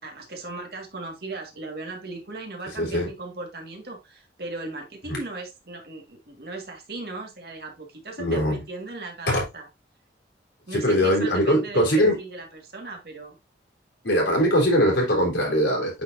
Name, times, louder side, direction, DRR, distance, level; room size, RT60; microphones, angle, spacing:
voice 1, 0.0-9.7 10.7-13.4, right 2 dB, 60° right, 1.9 m, -37 dB
voice 2, 2.8-3.1 5.1-5.2 8.2-8.6 9.3-9.4 10.7-12.2 14.0-16.0, equal, 80° left, 3.8 m, -21 dB
8.9 x 4.3 x 2.6 m
head